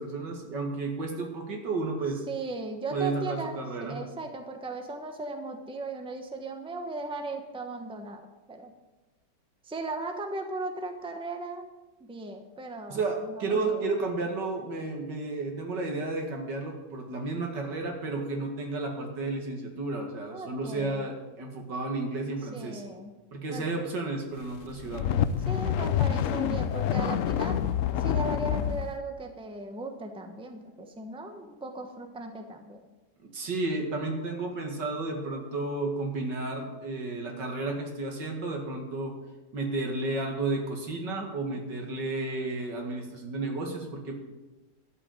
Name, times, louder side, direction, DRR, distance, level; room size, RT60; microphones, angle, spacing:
voice 1, 0.0-2.2 2.9-4.0 12.9-22.8 23.3-25.1 33.2-39.1 39.5-44.2, right 3 dB, 85° right, 2 dB, 2.7 m, -32 dB
voice 2, 2.3-8.7 9.6-11.7 12.0-13.9 20.3-21.0 22.4-23.1 23.5-23.7 25.5-27.6 28.0-32.8, right 2 dB, 5° right, 5 dB, 1.0 m, -37 dB
sound 1, 24.6-28.9, left 9 dB, 65° left, 0.8 m, -27 dB
12.0 x 6.1 x 9.0 m, 1.1 s
omnidirectional pair, 1.8 m